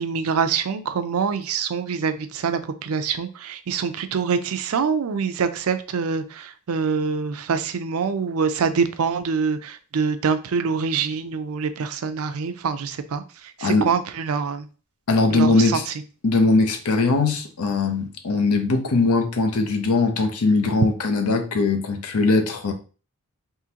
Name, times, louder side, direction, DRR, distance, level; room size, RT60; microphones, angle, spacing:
voice 1, 0.0-14.7 15.3-15.8, right 5 dB, 70° right, 0.4 m, -25 dB
voice 2, 13.6-13.9 15.1-15.8 16.2-22.7, left 3 dB, 85° left, 0.7 m, -20 dB
3.7 x 2.7 x 2.8 m
head